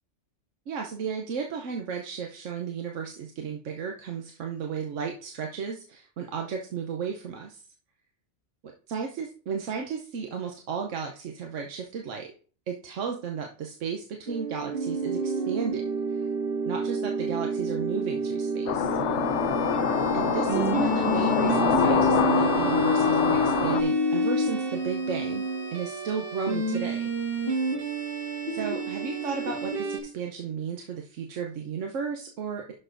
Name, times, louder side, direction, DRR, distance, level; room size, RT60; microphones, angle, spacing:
voice 1, 0.7-7.6 8.6-12.3 12.7-15.8 16.1-16.3 16.7-19.0 20.1-27.0 28.5-32.7, right 6 dB, 85° right, 2 dB, 1.2 m, -34 dB
sound 1, 14.3-30.0, right 2 dB, 50° right, 1.9 m, -28 dB
sound 2, 18.7-23.8, left 9 dB, 75° left, 1.0 m, -25 dB
11.0 x 6.3 x 2.6 m, 0.41 s
omnidirectional pair, 1.2 m